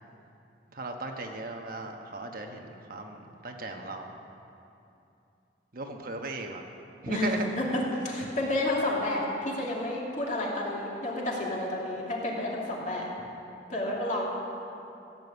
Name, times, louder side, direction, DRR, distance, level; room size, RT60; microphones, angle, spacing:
voice 1, 0.7-4.1 5.7-6.6 7.0-7.5, right 2 dB, 55° right, 3 dB, 1.2 m, -36 dB
voice 2, 7.1-13.0 13.7-14.2, left 1 dB, 45° left, -3 dB, 2.6 m, -30 dB
16.0 x 7.6 x 8.3 m, 2.7 s
head